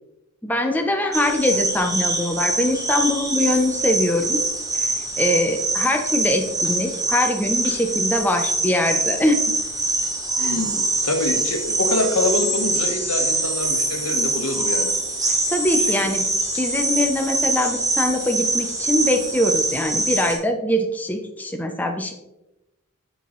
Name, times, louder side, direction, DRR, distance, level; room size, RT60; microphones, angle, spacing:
voice 1, 0.4-4.4 4.7-9.4 10.4-10.5 15.5-16.3 16.6-22.1, left 1 dB, 10° left, 4 dB, 0.4 m, -22 dB
sound 1, 1.1-20.3, right 2 dB, 15° right, 1.1 m, -24 dB
voice 2, 10.4-14.9 15.7-16.2, left 2 dB, 85° left, 5 dB, 1.0 m, -25 dB
7.3 x 5.3 x 3.0 m, 0.95 s
head